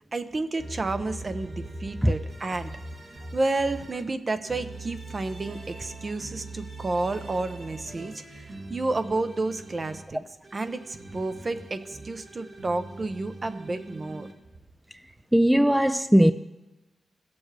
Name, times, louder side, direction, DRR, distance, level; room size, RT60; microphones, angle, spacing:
voice 1, 0.1-2.7 3.3-14.3, right 2 dB, 45° right, 0.7 m, -31 dB
sound 1, 0.6-4.0 4.4-10.0 10.4-14.3, right 2 dB, 65° right, 2.0 m, -41 dB
voice 2, 15.3-16.3, equal, 5° right, 0.4 m, -18 dB
17.0 x 7.0 x 3.4 m
cardioid pair, 55°, 0 cm